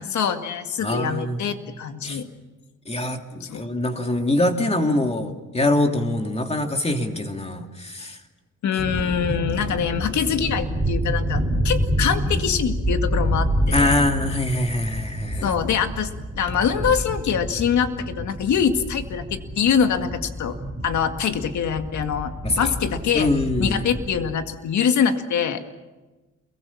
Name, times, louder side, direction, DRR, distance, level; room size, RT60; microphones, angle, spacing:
voice 1, 0.0-2.3 3.4-3.6 8.6-13.5 13.7-14.1 15.4-16.1 16.4-20.6 20.8-23.3 23.6-25.6, left 7 dB, 70° left, 7 dB, 2.1 m, -24 dB
voice 2, 0.8-1.5 2.0-2.2 2.9-8.2 13.7-15.5 22.4-22.7 23.1-23.8, left 1 dB, 20° left, 4 dB, 2.7 m, -24 dB
sound 1, 8.8-24.1, equal, 10° right, 8.0 m, -28 dB
28.0 x 22.5 x 7.3 m, 1.2 s
cardioid pair, 90°, 30 cm